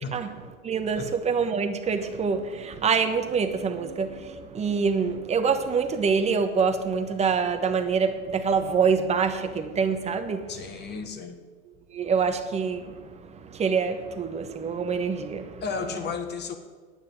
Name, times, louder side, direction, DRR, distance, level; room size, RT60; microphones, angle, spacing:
voice 1, 0.6-10.5 11.9-15.6, right 5 dB, 15° right, 1.2 m, -26 dB
voice 2, 10.5-11.4 15.6-16.6, left 5 dB, 25° left, 1.6 m, -33 dB
10.0 x 8.9 x 9.0 m
hypercardioid pair, 110°, 43 cm